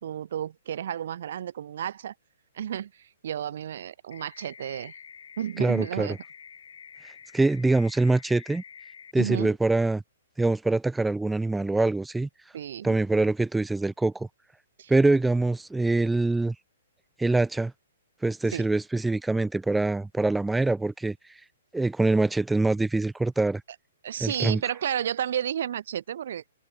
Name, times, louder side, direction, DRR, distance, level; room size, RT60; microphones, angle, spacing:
voice 1, 0.0-2.1 2.5-5.0 5.4-6.2 9.2-9.6 12.5-13.0 14.8-14.9 18.5-18.7 24.0-26.4, right 10 dB, 60° right, 1.9 m, -32 dB
sound 1, 4.1-9.1, left 7 dB, 80° left, 3.8 m, -48 dB
voice 2, 5.6-6.1 7.0-8.6 9.1-10.0 10.4-12.3 12.8-14.3 14.9-16.5 17.2-17.7 18.2-21.2 21.7-23.6 24.2-24.6, right 2 dB, 5° right, 1.0 m, -24 dB
hypercardioid pair, 155°, 0 cm